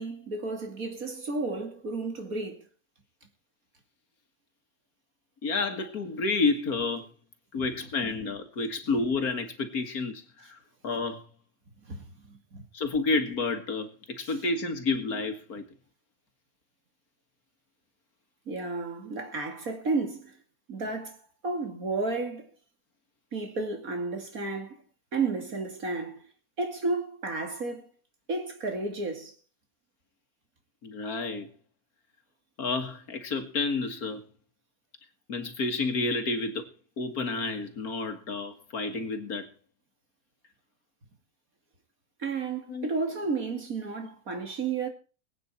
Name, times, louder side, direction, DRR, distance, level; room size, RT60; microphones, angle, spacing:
voice 1, 0.0-2.7 8.0-8.1 11.8-12.6 14.2-14.3 18.5-20.4 20.7-22.5 23.3-24.8 25.1-26.3 26.6-27.9 28.3-29.3 42.2-44.9, right 3 dB, 65° right, 3.1 m, -32 dB
voice 2, 5.4-7.1 7.5-10.6 10.8-11.3 12.7-15.6 30.8-31.5 32.6-34.2 35.3-36.7 37.0-39.5 42.7-42.9, left 3 dB, 70° left, 2.3 m, -30 dB
21.5 x 9.1 x 4.4 m
omnidirectional pair, 1.6 m